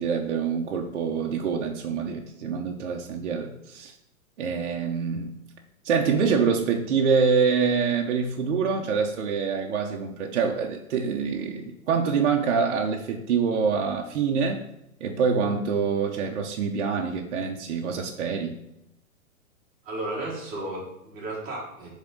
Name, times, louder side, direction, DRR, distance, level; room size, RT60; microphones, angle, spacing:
voice 1, 0.0-3.9 4.4-5.3 5.8-14.6 15.0-18.6, right 6 dB, 55° right, 1 dB, 0.8 m, -25 dB
voice 2, 19.8-21.9, right 2 dB, 20° right, -4 dB, 1.7 m, -34 dB
7.4 x 3.6 x 3.8 m, 0.84 s
hypercardioid pair, 160°, 42 cm